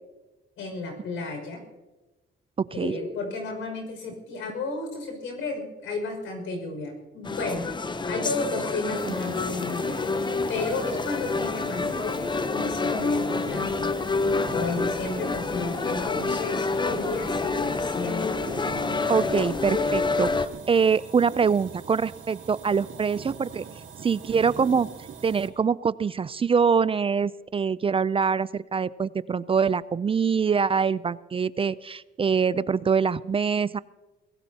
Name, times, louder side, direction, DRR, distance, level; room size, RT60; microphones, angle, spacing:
voice 1, 0.6-1.6 2.7-7.6 8.1-10.0 10.5-13.9 14.5-18.3, left 3 dB, 85° left, 3 dB, 5.6 m, -33 dB
voice 2, 2.6-2.9 9.1-9.2 19.1-23.6 24.0-24.9 25.2-33.8, right 6 dB, 30° right, 18 dB, 0.4 m, -24 dB
sound 1, 7.2-20.5, left 3 dB, 25° left, 0.7 m, -28 dB
sound 2, 8.9-25.5, right 6 dB, 75° right, 2.8 m, -42 dB
23.0 x 17.0 x 2.8 m, 1.1 s
cardioid pair, 90°, 20 cm